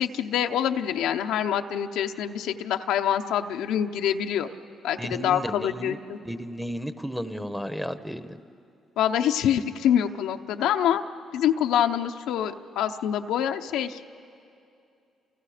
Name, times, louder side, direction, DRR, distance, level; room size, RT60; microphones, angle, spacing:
voice 1, 0.0-4.5 4.8-6.2 9.0-11.0 11.3-14.0, left 9 dB, 90° left, 6 dB, 0.8 m, -25 dB
voice 2, 5.0-6.0 6.2-8.4, equal, ahead, 10 dB, 1.0 m, -33 dB
29.5 x 28.5 x 5.1 m, 2.5 s
cardioid pair, 90°, 0 cm